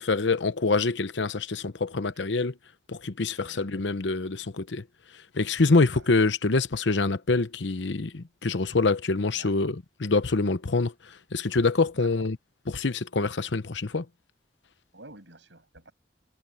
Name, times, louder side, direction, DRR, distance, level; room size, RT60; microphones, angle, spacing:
voice 1, 0.0-2.5 2.9-4.8 5.3-10.9 11.3-12.4 12.7-14.0, left 3 dB, 85° left, 0.9 m, -25 dB
voice 2, 14.9-15.9, right 2 dB, 85° right, 7.9 m, -48 dB
head